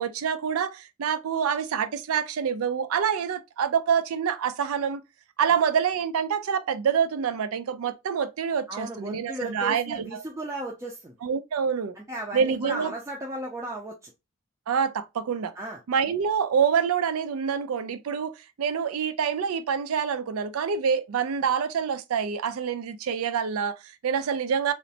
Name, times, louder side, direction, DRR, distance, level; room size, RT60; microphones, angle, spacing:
voice 1, 0.0-5.0 5.4-10.2 11.2-12.0 12.3-12.9 14.7-15.5 15.9-24.7, right 7 dB, 90° right, 0.4 m, -26 dB
voice 2, 8.7-11.1 12.0-14.1 15.6-15.8, right 1 dB, 15° right, 0.3 m, -35 dB
3.0 x 2.0 x 2.6 m
head